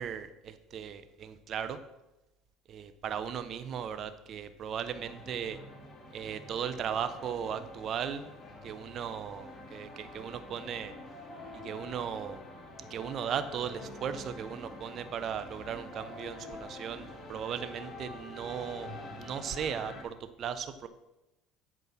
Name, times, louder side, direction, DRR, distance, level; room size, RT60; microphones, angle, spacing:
voice 1, 0.0-1.8 2.7-5.6 6.1-8.3 8.6-10.9 11.6-12.4 12.9-18.9 19.2-20.9, right 8 dB, 50° right, 11 dB, 0.6 m, -37 dB
sound 1, 4.9-20.0, left 2 dB, 25° left, 2.5 m, -47 dB
8.3 x 5.4 x 6.0 m, 0.95 s
supercardioid pair, 100°, 0 cm